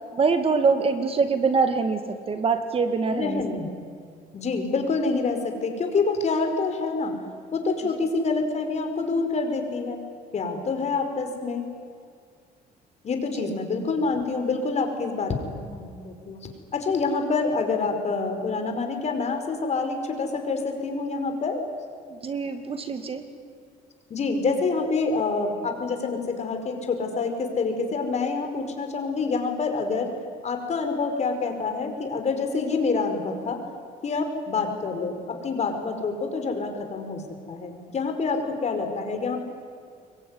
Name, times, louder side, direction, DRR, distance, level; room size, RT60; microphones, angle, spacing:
voice 1, 0.1-3.4 13.3-13.5 22.1-23.3, right 4 dB, 35° right, 8 dB, 2.1 m, -24 dB
voice 2, 3.1-3.8 4.3-7.2 7.5-10.0 10.3-11.7 13.0-21.6 22.9-23.1 24.1-30.1 30.4-33.6 34.0-37.2 37.5-39.4, left 4 dB, 40° left, 5 dB, 4.9 m, -27 dB
26.0 x 23.0 x 9.8 m, 2.1 s
cardioid pair, 110°, 17 cm